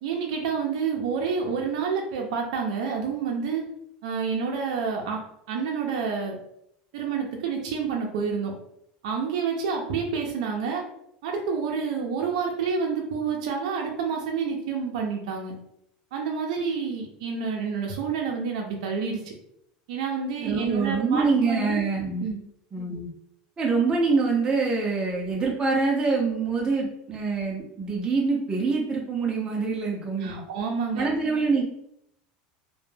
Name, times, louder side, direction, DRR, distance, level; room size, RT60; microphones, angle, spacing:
voice 1, 0.0-3.7 4.0-5.2 5.5-6.4 6.9-8.5 9.0-10.8 11.2-15.5 16.1-19.3 19.9-21.8 22.2-22.4 30.2-31.1, right 5 dB, 80° right, 1 dB, 0.5 m, -28 dB
voice 2, 20.4-22.2 22.7-23.1 23.6-30.4 30.9-31.6, right 4 dB, 20° right, -2 dB, 0.5 m, -25 dB
2.2 x 2.0 x 3.1 m, 0.75 s
supercardioid pair, 130°, 4 cm